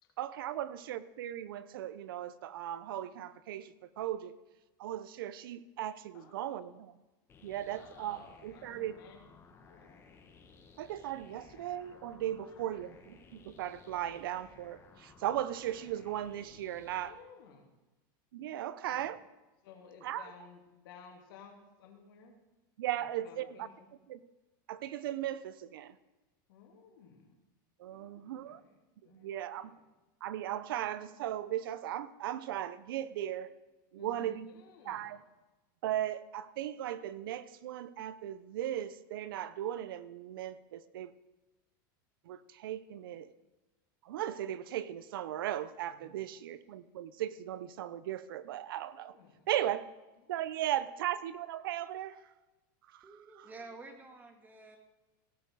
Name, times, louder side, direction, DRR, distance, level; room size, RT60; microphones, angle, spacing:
voice 1, 0.2-4.3 4.8-6.9 7.4-9.0 10.8-17.2 18.3-19.2 20.0-20.3 22.8-23.7 24.1-24.2 24.7-26.0 27.8-28.6 29.1-29.7 30.2-33.6 33.9-35.2 35.8-41.1 42.2-43.3 44.0-49.2 49.5-49.9 50.3-52.2 52.9-53.1, right 12 dB, 90° right, 15 dB, 0.7 m, -37 dB
voice 2, 6.1-6.6 7.6-9.3 9.6-9.9 12.4-12.8 17.0-17.8 18.7-19.1 19.6-22.3 23.0-23.9 26.5-27.3 27.9-28.8 29.0-29.8 33.9-35.1 45.8-46.1 48.9-49.5 50.2-50.7, left 6 dB, 85° left, 1 dB, 2.8 m, -56 dB
sound 1, 7.3-17.1, left 5 dB, 25° left, 1.5 m, -58 dB
voice 3, 53.0-54.8, right 3 dB, 15° right, 4 dB, 1.8 m, -50 dB
17.0 x 6.8 x 4.8 m, 1.1 s
supercardioid pair, 140°, 11 cm